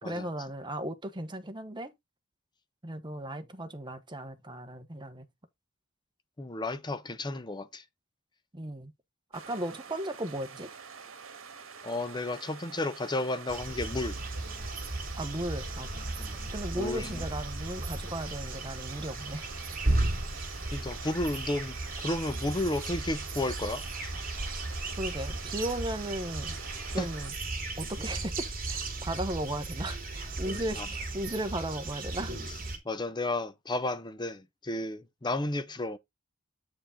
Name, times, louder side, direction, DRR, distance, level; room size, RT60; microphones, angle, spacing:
voice 1, 0.0-1.9 2.8-5.3 8.5-8.9 9.3-10.7 15.2-16.1 16.5-19.5 25.0-26.6 26.9-27.3 27.8-32.3, right 1 dB, 20° right, 1.1 m, -36 dB
voice 2, 6.4-7.8 11.8-14.2 16.2-16.4 16.7-17.2 20.7-23.8 27.0-27.1 30.8-30.9 32.8-36.0, left 2 dB, 20° left, 0.7 m, -32 dB
sound 1, 9.3-27.3, right 6 dB, 70° right, 1.4 m, -47 dB
sound 2, 13.5-32.8, right 2 dB, 45° right, 2.6 m, -35 dB
8.5 x 4.9 x 3.7 m
head